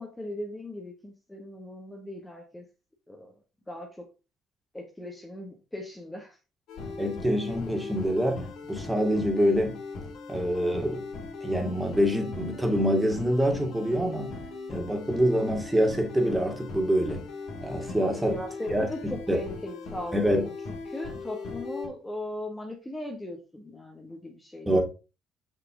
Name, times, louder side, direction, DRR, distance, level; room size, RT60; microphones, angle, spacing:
voice 1, 0.0-2.6 3.1-3.3 3.7-4.1 4.7-6.4 18.0-20.5 20.8-24.8, left 1 dB, 10° left, 1.6 m, -38 dB
sound 1, 6.7-21.9, left 3 dB, 65° left, 2.4 m, -39 dB
voice 2, 7.0-9.8 10.3-11.0 11.4-14.4 14.7-17.2 17.6-18.4 18.7-18.9 19.3-19.4 20.1-20.5 24.7-24.8, equal, 10° right, 2.3 m, -25 dB
6.1 x 5.9 x 3.7 m
hypercardioid pair, 55°, 0 cm